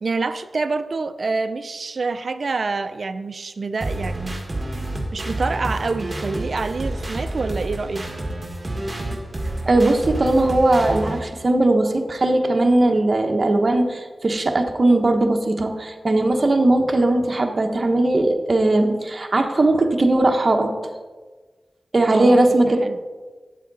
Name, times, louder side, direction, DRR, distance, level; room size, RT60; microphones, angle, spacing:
voice 1, 0.0-4.4 5.1-8.0 22.1-23.0, right 4 dB, 65° right, 11 dB, 0.5 m, -27 dB
sound 1, 3.8-11.2, right 1 dB, 35° right, 1.8 m, -29 dB
voice 2, 9.7-20.7 21.9-22.8, right 2 dB, 50° right, 4 dB, 1.0 m, -19 dB
9.2 x 7.4 x 4.0 m, 1.3 s
cardioid pair, 50°, 0 cm